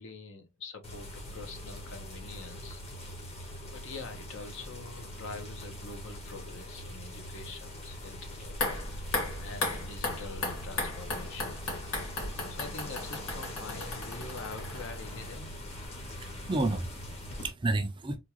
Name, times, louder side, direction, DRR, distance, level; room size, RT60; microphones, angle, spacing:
voice 1, 0.0-3.3 3.7-8.5 8.8-9.1 9.4-11.6 12.5-15.5, left 3 dB, 65° left, 0.8 m, -45 dB
sound 1, 0.8-17.5, equal, 30° left, 1.0 m, -43 dB
sound 2, 8.5-15.6 15.8-15.9, left 2 dB, 85° left, 1.9 m, -36 dB
voice 2, 15.9-18.2, right 2 dB, 25° right, 0.4 m, -32 dB
3.6 x 2.3 x 2.9 m
head